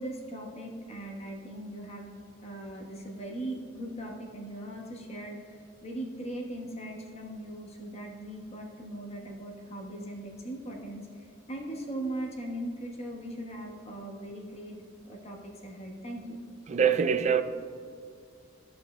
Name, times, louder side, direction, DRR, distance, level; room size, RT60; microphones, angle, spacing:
voice 1, 0.0-2.1 2.4-14.7 15.1-16.4, right 1 dB, 35° left, 1.1 m, -39 dB
voice 2, 16.7-17.4, right 7 dB, 35° right, 0.3 m, -24 dB
14.0 x 5.5 x 2.2 m
head